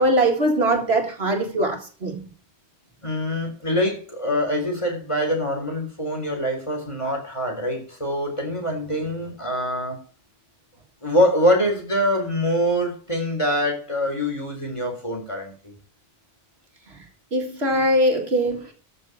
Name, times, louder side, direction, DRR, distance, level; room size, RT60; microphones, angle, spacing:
voice 1, 0.0-2.2 17.3-18.7, right 1 dB, 60° right, 2.2 m, -21 dB
voice 2, 3.0-10.0 11.0-15.7, equal, 25° left, 4.0 m, -24 dB
14.0 x 5.5 x 6.4 m
omnidirectional pair, 1.2 m